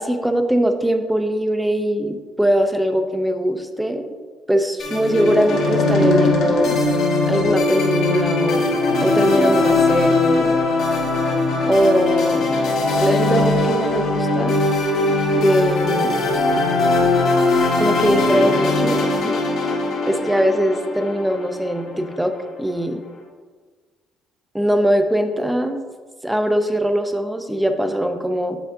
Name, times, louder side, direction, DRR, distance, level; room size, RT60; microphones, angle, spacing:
voice 1, 0.0-4.2 4.5-6.8 7.3-8.6 9.0-10.5 11.7-12.5 13.0-14.6 15.0-16.1 17.8-19.4 20.1-22.3 22.6-23.0 24.5-25.8 26.2-28.6, equal, 5° right, 7 dB, 0.6 m, -21 dB
sound 1, 4.8-22.2, left 2 dB, 65° left, 1.4 m, -20 dB
7.7 x 4.8 x 2.6 m, 1.4 s
cardioid pair, 100°, 0 cm